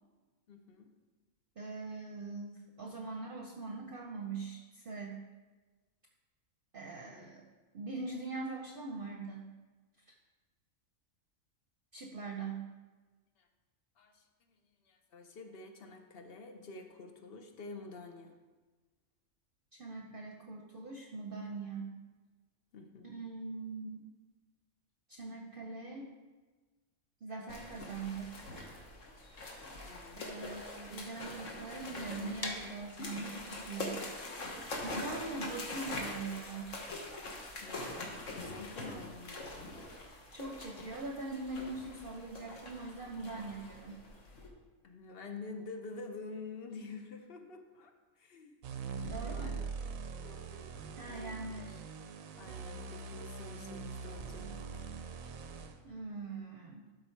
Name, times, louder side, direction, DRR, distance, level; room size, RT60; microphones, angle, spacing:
voice 1, 0.5-0.9 7.1-7.3 13.4-13.5 14.0-14.2 14.8-18.3 22.7-23.1 29.8-30.3 37.6-39.4 44.8-47.9 48.2-49.6 50.2-51.4 52.4-54.9, left 3 dB, 50° left, 5 dB, 0.9 m, -48 dB
voice 2, 1.6-5.3 6.7-7.4 7.7-9.5 11.9-12.7 19.7-21.9 23.0-24.0 25.1-26.1 27.2-28.5 30.2-34.0 34.8-36.8 38.8-38.9 40.3-44.0 49.0-49.7 51.0-51.8 55.8-56.9, right 3 dB, 50° right, 1 dB, 0.8 m, -42 dB
sound 1, 27.5-44.5, left 2 dB, 70° left, 1.6 m, -44 dB
sound 2, 32.4-38.2, left 1 dB, 20° left, 0.7 m, -47 dB
sound 3, 48.6-55.8, right 5 dB, 85° right, 1.1 m, -42 dB
12.0 x 4.0 x 4.5 m, 1.3 s
omnidirectional pair, 1.4 m